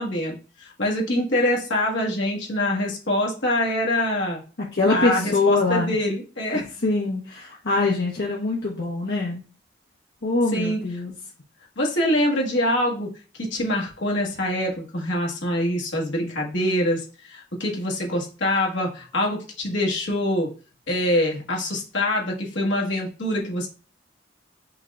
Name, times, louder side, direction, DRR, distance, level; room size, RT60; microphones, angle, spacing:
voice 1, 0.0-4.4 4.9-6.7 10.5-10.8 11.8-13.1 13.5-20.5 20.9-23.7, left 1 dB, 85° left, -1 dB, 1.5 m, -24 dB
voice 2, 4.7-5.9 6.8-9.4 10.2-11.1, left 3 dB, 65° left, -4 dB, 1.0 m, -23 dB
5.4 x 2.4 x 4.0 m, 0.36 s
head